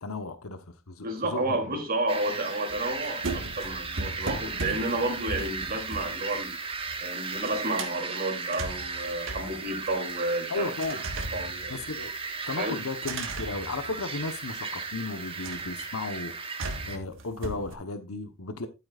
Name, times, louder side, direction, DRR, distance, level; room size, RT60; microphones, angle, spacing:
voice 1, 0.0-1.8 10.5-11.0 11.7-12.1 12.5-16.5 16.9-18.7, left 3 dB, 80° left, 1.1 m, -35 dB
voice 2, 1.0-6.6 7.0-10.7 11.3-11.7 12.6-12.8, right 2 dB, 45° right, 3.0 m, -31 dB
sound 1, 2.1-17.0, right 4 dB, 25° right, 1.5 m, -36 dB
sound 2, 2.7-7.1 7.3-8.0 8.4-10.3 10.8-12.3 13.0-14.5 15.4-15.8 16.6-17.7, right 2 dB, 65° right, 1.6 m, -38 dB
12.5 x 8.7 x 2.5 m
head